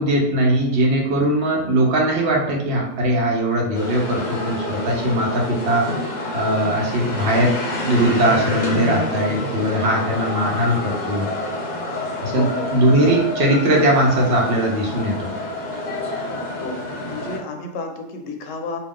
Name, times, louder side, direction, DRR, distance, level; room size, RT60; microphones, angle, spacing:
voice 1, 0.0-5.9 6.3-11.3 12.2-15.3, right 1 dB, 65° right, -2 dB, 0.9 m, -20 dB
sound 1, 3.7-17.4, left 1 dB, 45° left, 0.7 m, -28 dB
voice 2, 12.3-12.8 16.5-18.8, left 3 dB, 85° left, 4 dB, 1.0 m, -32 dB
2.3 x 2.3 x 3.5 m, 0.83 s
omnidirectional pair, 1.3 m